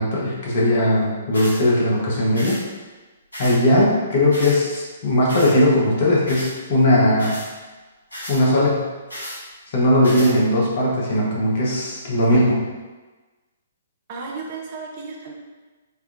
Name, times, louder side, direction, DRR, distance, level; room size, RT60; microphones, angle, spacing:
voice 1, 0.0-2.6 3.4-7.4 8.3-8.9 9.7-12.6, left 1 dB, 50° left, -5 dB, 0.9 m, -18 dB
sound 1, 1.3-1.6 2.3-2.6 3.3-3.6 4.3-4.6 5.3-5.5 6.3-6.5 7.2-7.5 8.1-8.4 9.1-9.4 10.0-10.3, equal, 85° left, 1.1 m, -34 dB
voice 2, 14.1-15.3, right 4 dB, 40° right, -1 dB, 0.5 m, -33 dB
3.4 x 2.2 x 2.5 m, 1.3 s
figure-of-eight pair, 120°, 0 cm